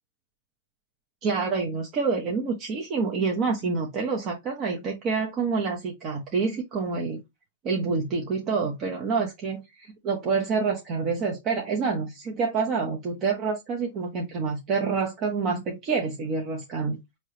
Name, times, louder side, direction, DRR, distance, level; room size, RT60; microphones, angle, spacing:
voice 1, 1.2-7.2 7.6-17.0, right 4 dB, 35° right, 0.9 m, -27 dB
4.6 x 2.9 x 3.2 m
hypercardioid pair, 130°, 0 cm